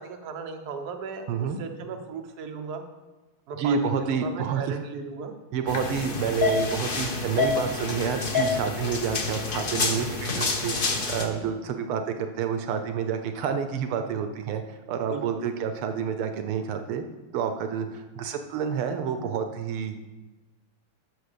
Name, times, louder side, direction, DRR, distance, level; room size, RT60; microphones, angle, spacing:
voice 1, 0.0-2.8 3.5-3.8 4.1-5.3 15.1-15.6, right 5 dB, 55° right, 5 dB, 1.4 m, -37 dB
voice 2, 1.3-1.6 3.6-4.7 5.5-17.0 17.3-20.0, right 7 dB, 80° right, 7 dB, 1.7 m, -29 dB
sound 1, 5.7-11.2, left 4 dB, 40° left, 0.8 m, -28 dB
9.7 x 6.3 x 6.8 m, 1.2 s
omnidirectional pair, 2.4 m